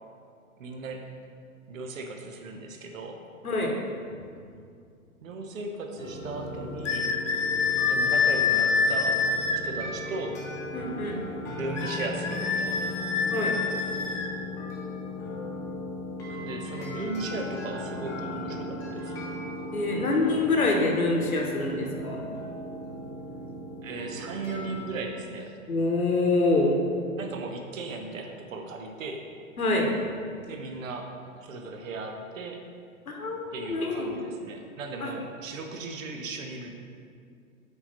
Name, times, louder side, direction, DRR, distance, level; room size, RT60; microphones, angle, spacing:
voice 1, 0.6-1.1 1.7-3.2 5.2-7.2 7.9-9.2 9.6-10.4 11.4-12.9 16.3-19.3 23.8-25.6 27.2-29.3 30.4-32.6 33.5-36.8, right 3 dB, 70° right, 4 dB, 0.8 m, -37 dB
sound 1, 6.0-24.9, left 1 dB, 10° left, 0.4 m, -37 dB
sound 2, 6.8-9.6 11.8-14.3, left 5 dB, 55° left, 0.8 m, -26 dB
voice 2, 10.7-11.2 13.3-13.5 19.7-22.2 25.7-26.8 29.6-29.9 33.1-34.1 35.0-35.1, left 2 dB, 85° left, 1 dB, 1.1 m, -25 dB
5.3 x 4.5 x 4.2 m, 2.3 s
figure-of-eight pair, 110°, 42 cm